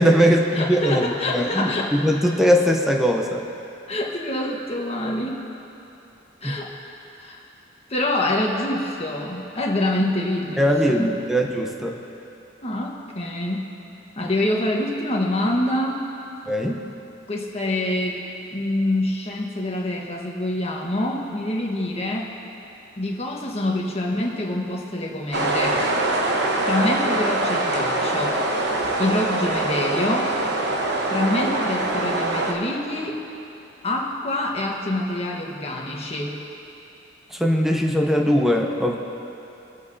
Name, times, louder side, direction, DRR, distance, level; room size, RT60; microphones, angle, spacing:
voice 1, 0.0-3.4 6.4-6.6 10.6-12.0 16.5-16.8 37.3-39.0, equal, ahead, 1 dB, 0.9 m, -20 dB
voice 2, 0.5-1.9 3.9-5.4 6.4-6.7 7.2-7.4 7.9-11.1 12.6-13.7 14.1-16.0 17.3-18.2 18.5-22.3 23.0-25.9 26.6-28.4 29.0-30.3 31.1-33.2 33.8-36.4, left 1 dB, 35° left, -1 dB, 1.4 m, -26 dB
sound 1, 25.3-32.5, right 2 dB, 60° right, 1.1 m, -23 dB
24.5 x 8.2 x 2.8 m, 2.9 s
head